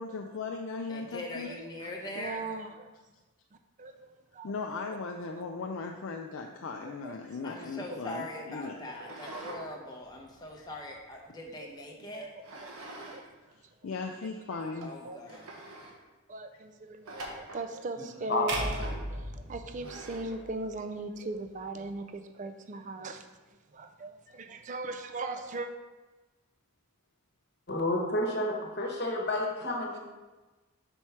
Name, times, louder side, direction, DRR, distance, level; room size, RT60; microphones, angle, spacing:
voice 1, 0.0-1.5 4.4-8.8 10.5-10.7 13.8-14.9 15.3-15.5, left 4 dB, 65° left, 2 dB, 0.4 m, -38 dB
voice 2, 0.9-2.4 7.4-12.3 14.8-15.4, left 1 dB, 20° left, -1 dB, 0.7 m, -42 dB
voice 3, 1.6-2.9 3.8-4.5 6.8-7.2 7.9-8.0 9.3-9.4 11.4-12.7 13.1-13.2 14.5-15.4 16.3-23.3 23.7-25.7, right 2 dB, 35° right, 8 dB, 0.4 m, -40 dB
sound 1, 9.0-9.6 10.0-11.4 12.4-13.2 13.5-13.6 14.3-14.4 14.8-14.9 15.3-16.0 17.1-17.7 18.7-19.1 19.8-20.4, right 2 dB, 85° right, 1.1 m, -45 dB
voice 4, 18.0-18.4 27.7-30.0, left 1 dB, 50° left, 0 dB, 1.1 m, -30 dB
sound 2, 18.5-20.7, right 1 dB, 55° right, 1.0 m, -36 dB
4.6 x 4.4 x 5.7 m, 1.2 s
head